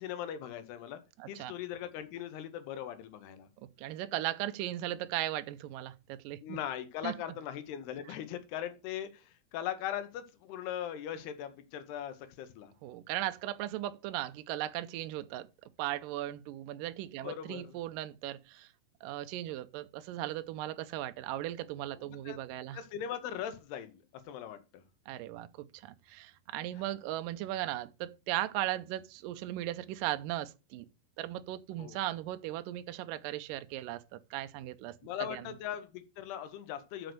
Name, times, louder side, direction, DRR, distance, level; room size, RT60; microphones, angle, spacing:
voice 1, 0.0-1.0 1.3-3.5 6.4-12.7 17.2-17.7 22.1-22.4 22.7-24.0 24.3-24.8 31.8-32.0 35.0-37.1, left 10 dB, 80° left, 3.0 m, -40 dB
voice 2, 1.2-1.5 3.8-6.6 7.0-7.1 12.8-18.7 19.0-22.8 25.1-30.9 31.2-35.0 35.3-35.5, right 14 dB, 90° right, 1.9 m, -37 dB
6.4 x 6.1 x 6.5 m
omnidirectional pair, 4.6 m